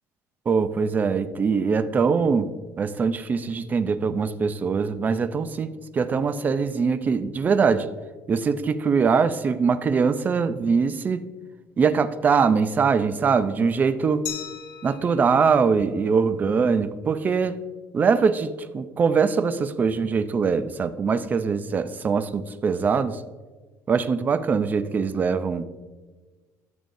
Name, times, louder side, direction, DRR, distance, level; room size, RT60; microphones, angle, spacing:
voice 1, 0.5-2.5 2.8-7.9 8.3-11.2 11.8-14.2 14.8-17.6 17.9-23.2 23.9-25.6, right 5 dB, 25° right, 12 dB, 0.4 m, -22 dB
Glass, 14.3-17.0, left 9 dB, 80° left, 1.0 m, -40 dB
12.5 x 6.9 x 2.6 m, 1.3 s
cardioid pair, 145°, 6 cm